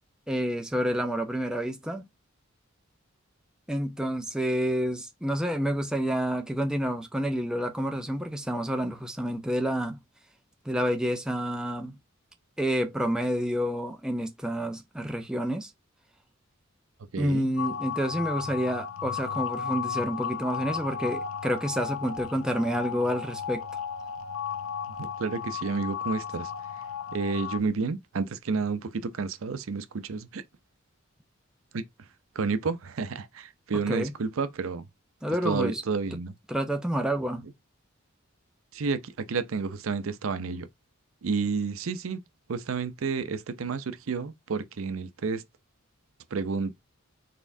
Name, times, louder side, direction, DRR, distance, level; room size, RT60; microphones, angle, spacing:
voice 1, 0.3-2.0 3.7-10.0 10.7-12.0 12.6-15.7 17.2-23.6 33.9-34.1 35.2-35.8 36.5-37.4, equal, 5° right, 0.5 m, -29 dB
voice 2, 17.1-17.5 24.9-26.5 27.1-30.4 31.7-31.8 32.3-34.9 35.4-36.3 38.7-40.7 41.2-42.2 42.5-45.4 46.3-46.8, right 4 dB, 80° right, 0.5 m, -30 dB
sound 1, 17.6-27.6, left 7 dB, 75° left, 0.6 m, -34 dB
4.2 x 3.4 x 2.6 m
head